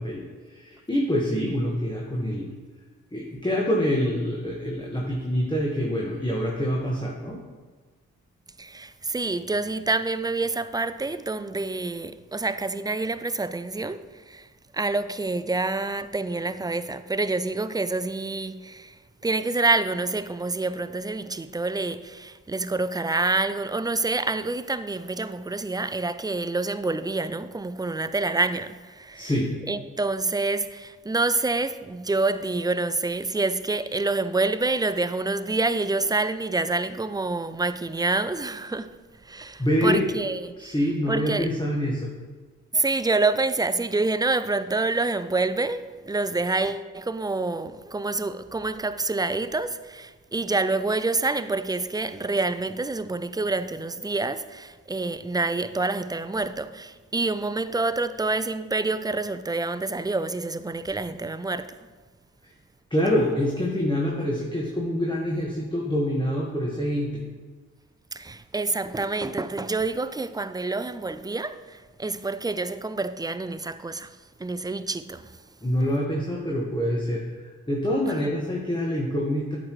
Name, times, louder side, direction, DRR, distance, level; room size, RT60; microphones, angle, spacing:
voice 1, 0.0-2.5 3.1-7.4 29.1-29.5 39.6-40.1 40.6-42.1 62.9-67.2 75.6-79.6, equal, 15° left, 1.5 m, -26 dB
voice 2, 8.6-14.5 14.7-19.0 19.2-29.3 29.7-38.9 39.2-40.7 41.1-41.5 42.7-61.7 68.1-75.4 78.1-78.2, right 3 dB, 10° right, 0.4 m, -27 dB
8.5 x 6.5 x 3.1 m
supercardioid pair, 40°, 35 cm